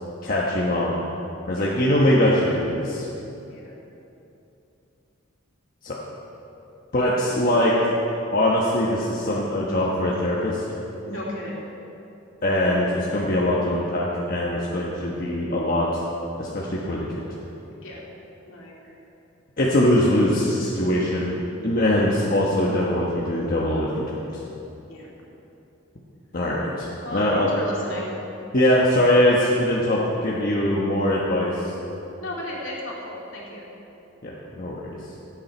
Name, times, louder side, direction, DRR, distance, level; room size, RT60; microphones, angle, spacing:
voice 1, 0.2-1.0 1.5-3.1 5.8-6.0 6.9-7.7 8.3-10.6 12.4-16.0 16.4-17.3 19.6-21.3 21.6-24.4 26.3-26.9 27.1-27.5 28.5-31.7 34.2-35.0, left 1 dB, 45° left, -5 dB, 1.2 m, -22 dB
voice 2, 1.5-1.8 3.5-3.8 11.0-11.6 17.8-18.1 18.4-18.9 24.9-25.1 27.0-28.2 32.2-33.7, left 1 dB, 65° left, -4 dB, 2.8 m, -34 dB
16.5 x 8.7 x 4.4 m, 2.9 s
head